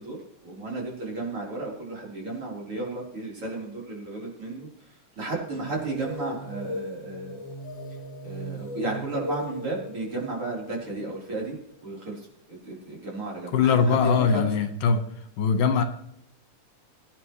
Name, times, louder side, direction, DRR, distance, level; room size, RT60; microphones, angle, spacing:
voice 1, 0.0-7.4 8.2-11.6 11.8-14.5, right 2 dB, 40° right, -3 dB, 4.9 m, -33 dB
sound 1, 5.6-12.0, equal, 30° left, 4.3 m, -38 dB
voice 2, 13.5-15.0 15.4-15.8, left 6 dB, 85° left, 7 dB, 3.0 m, -21 dB
23.0 x 9.7 x 3.3 m, 0.74 s
omnidirectional pair, 3.8 m